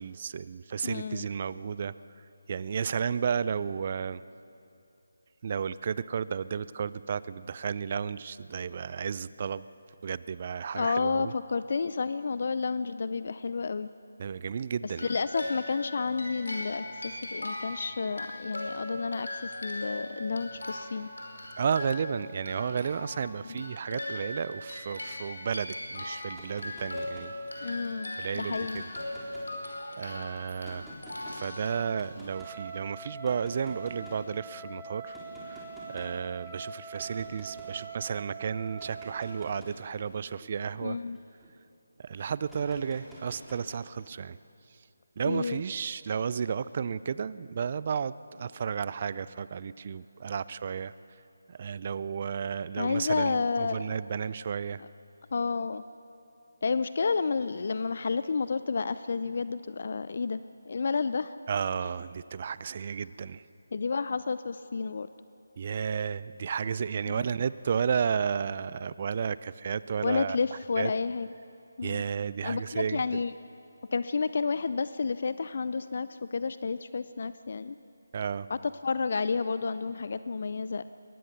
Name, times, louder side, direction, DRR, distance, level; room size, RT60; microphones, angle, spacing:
voice 1, 0.0-1.9 2.5-4.2 5.4-9.6 10.0-11.3 14.2-15.1 21.6-27.8 28.2-28.8 30.0-30.9 31.3-35.2 35.4-41.0 42.0-44.4 45.2-50.9 51.5-54.8 61.5-63.4 65.6-70.4 70.8-70.9 71.8-73.0 78.1-78.5, right 6 dB, 40° right, 17 dB, 0.5 m, -33 dB
voice 2, 0.8-1.3 10.7-13.9 15.0-21.1 23.4-23.6 27.6-28.8 40.8-41.2 45.3-45.6 52.8-54.0 54.8-54.9 55.3-55.8 56.6-60.4 60.7-61.3 63.7-65.1 67.1-67.2 70.0-71.3 71.8-72.0 72.4-73.3 73.9-77.8 78.5-80.8, left 4 dB, 50° left, 13 dB, 0.5 m, -31 dB
sound 1, 14.9-32.3, left 1 dB, 75° left, 4.9 m, -39 dB
sound 2, 26.3-27.8 28.4-29.9 30.6-31.4 32.0-32.5 33.2-34.3 35.1-36.2 37.0-37.8 38.7-41.5 42.4-44.0, equal, 5° right, 3.7 m, -49 dB
Trumpet, 32.2-39.6, right 5 dB, 20° right, 1.5 m, -43 dB
22.5 x 19.5 x 6.8 m, 2.7 s
figure-of-eight pair, 155°, 0 cm